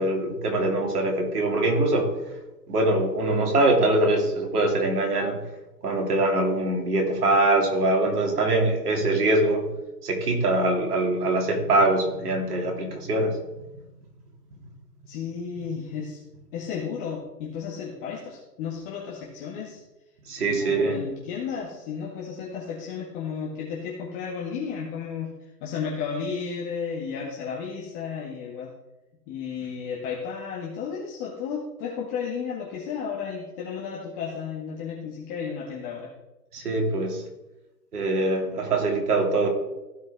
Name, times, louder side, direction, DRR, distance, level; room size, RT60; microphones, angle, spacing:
voice 1, 0.0-2.1 2.7-5.4 5.8-9.6 10.0-13.4 20.3-21.0 36.5-37.2 37.9-39.5, right 2 dB, 65° right, 2 dB, 2.7 m, -23 dB
voice 2, 15.1-16.2 16.5-19.8 20.4-25.3 25.6-28.7 29.3-36.1, left 6 dB, 35° left, -4 dB, 1.8 m, -33 dB
15.5 x 5.2 x 3.6 m, 1.0 s
hypercardioid pair, 125°, 49 cm